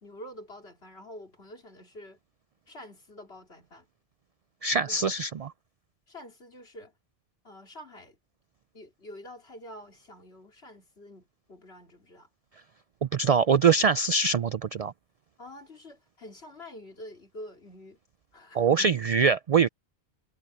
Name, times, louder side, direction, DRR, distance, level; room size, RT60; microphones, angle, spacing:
voice 1, 0.0-2.2 2.7-3.9 4.9-5.1 6.1-6.9 7.4-8.2 8.7-12.3 15.4-18.0 18.3-18.9, left 1 dB, 65° left, 3.4 m, -47 dB
voice 2, 4.6-5.5 13.0-14.9 18.5-19.7, right 5 dB, 75° right, 0.3 m, -23 dB
omnidirectional pair, 1.2 m